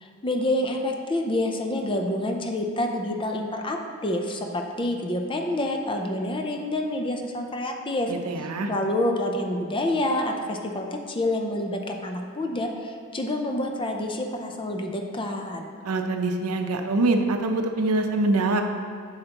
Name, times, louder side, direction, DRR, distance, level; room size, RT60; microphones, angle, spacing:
voice 1, 0.0-8.1 8.7-15.7, left 1 dB, 25° left, 3 dB, 0.6 m, -28 dB
voice 2, 8.1-8.7 15.8-18.6, right 2 dB, 85° right, 5 dB, 0.6 m, -24 dB
7.8 x 6.5 x 2.9 m, 2.2 s
head